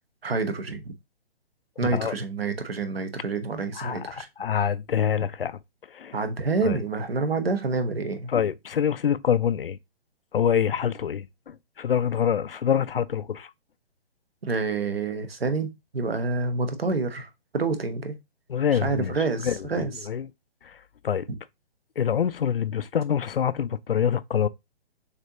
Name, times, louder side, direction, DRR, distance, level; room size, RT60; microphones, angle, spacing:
voice 1, 0.2-0.8 1.8-4.3 6.1-8.3 14.4-18.2 18.7-19.9, right 4 dB, 65° right, 1.1 m, -28 dB
voice 2, 3.8-5.6 5.9-6.2 6.6-6.8 8.3-9.8 10.3-13.5 18.5-19.1 19.4-20.3 20.6-20.8 21.0-21.3 22.0-24.5, left 8 dB, 60° left, 0.5 m, -26 dB
6.6 x 2.8 x 2.8 m
figure-of-eight pair, 130°, 32 cm